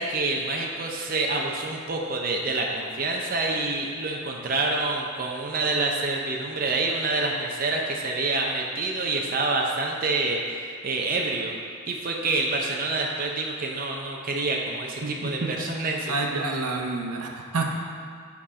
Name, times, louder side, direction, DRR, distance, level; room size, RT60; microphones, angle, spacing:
voice 1, 0.0-11.5 11.9-16.4, right 3 dB, 40° right, -1 dB, 0.6 m, -27 dB
voice 2, 15.0-15.5 16.1-17.8, right 3 dB, 85° right, 2 dB, 0.8 m, -28 dB
8.4 x 4.2 x 5.0 m, 2.2 s
head